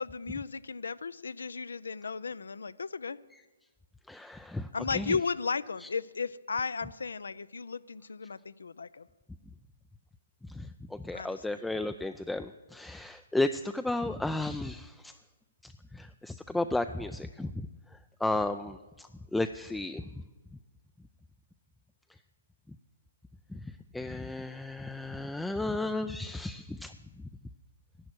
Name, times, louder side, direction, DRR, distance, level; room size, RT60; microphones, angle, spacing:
voice 1, 0.0-3.2 4.7-9.1 11.1-11.6, left 5 dB, 80° left, 18 dB, 0.4 m, -35 dB
voice 2, 4.1-5.2 5.8-5.9 10.4-15.2 15.6-20.1 22.7-22.8 23.5-26.9, left 2 dB, 5° left, 9 dB, 0.3 m, -34 dB
11.0 x 9.3 x 6.2 m, 1.2 s
hypercardioid pair, 130°, 0 cm